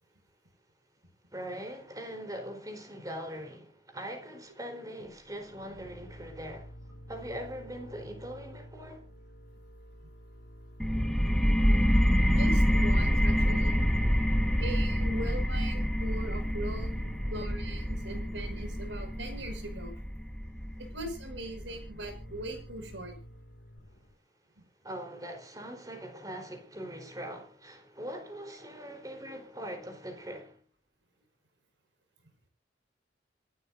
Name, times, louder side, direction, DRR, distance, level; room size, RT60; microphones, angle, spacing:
voice 1, 1.3-6.7 7.1-9.0 24.8-30.6, equal, 20° right, 4.2 m, -41 dB
sound 1, 5.0-12.5 12.7-12.9 13.3-15.2 15.6-24.1, equal, 75° left, 3.5 m, -51 dB
sound 2, 10.8-22.2, equal, 5° left, 1.5 m, -27 dB
voice 2, 12.3-13.8 14.6-19.9 20.8-23.1 24.6-24.7, right 1 dB, 80° right, 5.8 m, -40 dB
27.0 x 12.5 x 2.7 m
head